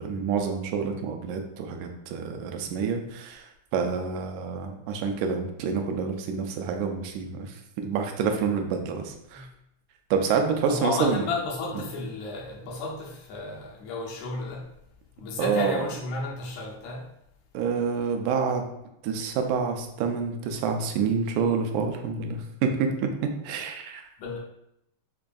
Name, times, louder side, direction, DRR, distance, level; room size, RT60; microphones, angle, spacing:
voice 1, 0.0-9.5 10.1-11.3 15.4-15.8 17.5-18.6 19.0-24.1, right 5 dB, 85° right, 4 dB, 1.9 m, -28 dB
voice 2, 10.7-14.7 15.2-17.1 24.2-24.4, left 3 dB, 80° left, -1 dB, 1.8 m, -33 dB
5.1 x 2.5 x 2.3 m, 0.79 s
omnidirectional pair, 3.4 m